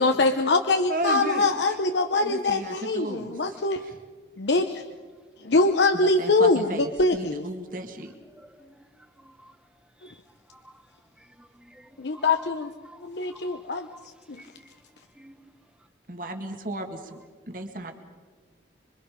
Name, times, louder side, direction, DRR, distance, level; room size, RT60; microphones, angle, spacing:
voice 1, 0.0-3.8 4.4-4.8 5.4-7.5 12.0-12.7 13.0-13.9 14.3-14.4, left 3 dB, 80° left, 7 dB, 0.8 m, -23 dB
voice 2, 0.9-1.5 2.1-4.0 5.9-8.1 16.1-17.2 17.5-17.9, right 1 dB, 50° right, 4 dB, 2.1 m, -34 dB
voice 3, 8.3-8.9 9.2-9.5 10.0-10.2 10.5-10.8 11.2-12.5 12.8-13.0 13.3-13.6 13.9-14.1 14.4-14.8 15.1-15.5, right 1 dB, 5° right, 10 dB, 0.8 m, -49 dB
26.0 x 24.0 x 5.2 m, 1.5 s
head